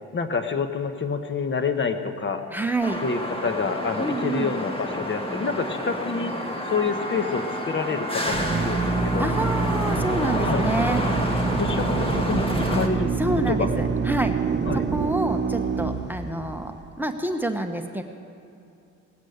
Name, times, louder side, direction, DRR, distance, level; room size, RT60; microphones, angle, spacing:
voice 1, 0.1-2.4 3.0-9.2 10.4-10.6 11.5-13.1 13.5-13.7 14.6-14.8, left 5 dB, 40° left, 7 dB, 1.1 m, -28 dB
voice 2, 2.5-3.0 4.0-4.5 9.2-11.0 13.2-14.3 14.7-18.0, right 1 dB, 5° right, 5 dB, 1.0 m, -28 dB
sound 1, 2.8-12.9, equal, 20° left, 1.8 m, -29 dB
Drill, 8.2-16.8, right 5 dB, 35° right, 1.0 m, -26 dB
19.0 x 8.3 x 8.0 m, 2.7 s
cardioid pair, 90°, 30 cm